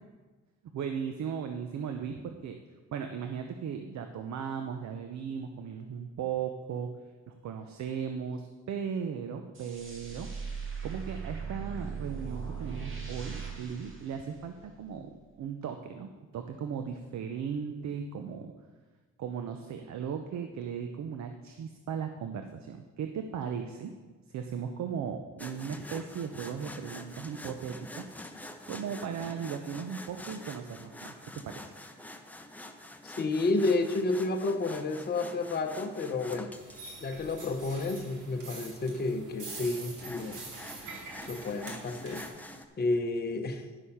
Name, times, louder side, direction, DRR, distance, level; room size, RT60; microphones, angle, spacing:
voice 1, 0.7-2.6 2.9-6.9 7.3-10.3 10.8-18.5 19.2-23.9 24.3-28.0 28.7-31.7, right 7 dB, 65° right, 6 dB, 0.8 m, -37 dB
sound 1, 9.5-14.9, right 6 dB, 40° right, 2.0 m, -39 dB
sound 2, 25.4-36.8 39.4-42.7, left 1 dB, 5° left, 0.8 m, -46 dB
voice 2, 33.0-36.5 37.0-40.5 41.3-42.3 42.8-43.6, left 3 dB, 30° left, 3 dB, 0.9 m, -31 dB
sound 3, 36.5-42.3, right 3 dB, 85° right, 2.5 m, -45 dB
11.0 x 6.5 x 5.6 m, 1.3 s
cardioid pair, 90°, 30 cm